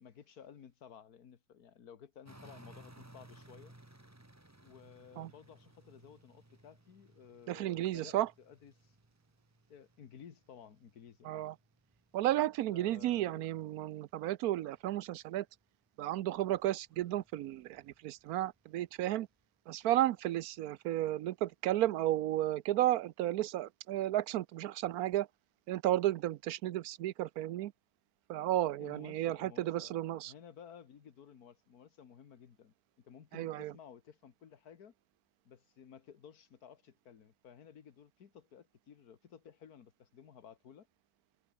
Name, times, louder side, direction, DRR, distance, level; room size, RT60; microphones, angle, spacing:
voice 1, 0.0-3.8 4.6-9.0 9.7-11.5 12.7-13.5 28.8-34.9 35.5-40.9, left 8 dB, 65° left, 2.0 m, -55 dB
sound 1, 2.2-14.2 14.6-19.4 20.0-20.1, right 1 dB, 10° right, 1.7 m, -61 dB
voice 2, 7.5-8.3 11.2-11.5 12.1-15.5 16.0-19.3 19.7-25.3 25.7-27.7 28.3-30.3 33.3-33.7, right 14 dB, 75° right, 1.0 m, -33 dB
omnidirectional pair, 1.7 m